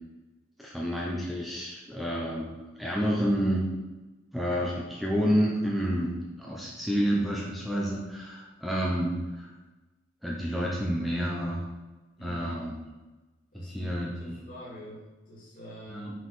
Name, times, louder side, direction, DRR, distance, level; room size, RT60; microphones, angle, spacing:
voice 1, 0.6-2.5 2.8-3.7 4.3-9.5 10.2-11.6 12.2-12.8 13.5-14.4 15.9-16.1, equal, ahead, -4 dB, 0.8 m, -29 dB
voice 2, 13.5-16.1, equal, 45° left, -7 dB, 2.4 m, -46 dB
6.0 x 4.8 x 5.6 m, 1.2 s
head